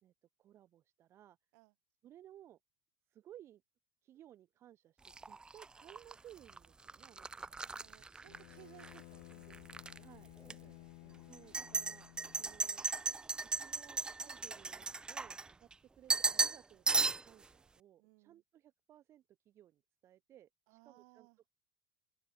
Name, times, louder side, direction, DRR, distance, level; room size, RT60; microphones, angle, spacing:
voice 1, 0.4-1.4 2.0-2.6 3.1-3.6 4.0-5.0 5.2-7.8 10.0-10.3 11.2-12.1 12.4-12.8 13.5-15.7 15.9-21.3, right 12 dB, 40° right, 1.7 m, -59 dB
sound 1, 5.0-9.0 9.3-10.0 10.4-10.5 11.3-15.7 16.1-16.6 16.9-17.4, right 4 dB, 10° right, 0.4 m, -36 dB
voice 2, 7.5-11.5 18.0-18.4 20.7-21.4, right 40 dB or more, 65° right, 6.8 m, -63 dB
Bowed string instrument, 8.2-12.7, left 40 dB or more, 65° left, 2.5 m, -56 dB
open air
supercardioid pair, 125°, 7 cm